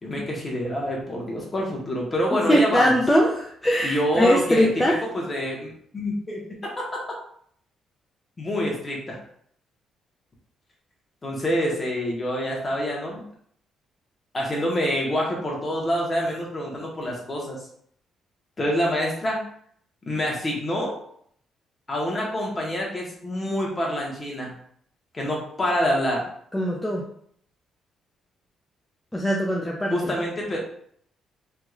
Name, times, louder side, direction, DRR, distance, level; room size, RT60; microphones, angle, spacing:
voice 1, 0.0-3.0 3.8-4.7 5.1-7.0 8.4-9.2 11.2-13.2 14.3-17.6 18.6-19.4 20.1-21.0 21.9-24.5 25.1-26.3 29.9-30.6, equal, 30° left, -2 dB, 1.3 m, -26 dB
voice 2, 2.3-5.0 26.5-27.0 29.1-30.1, equal, 10° left, -2 dB, 0.6 m, -21 dB
3.6 x 3.0 x 2.4 m, 0.64 s
cardioid pair, 90°, 0 cm